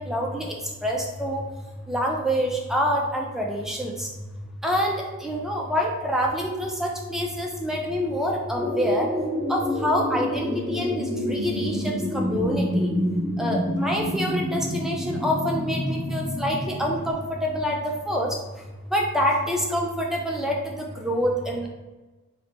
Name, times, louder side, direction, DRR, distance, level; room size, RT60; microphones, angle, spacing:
voice 1, 0.0-1.4 1.9-4.1 4.6-9.1 9.5-12.9 13.4-18.4 18.8-21.7, equal, ahead, -1 dB, 0.4 m, -26 dB
sound 1, 8.6-17.1, equal, 25° right, 0.8 m, -28 dB
3.1 x 2.1 x 4.0 m, 1.2 s
head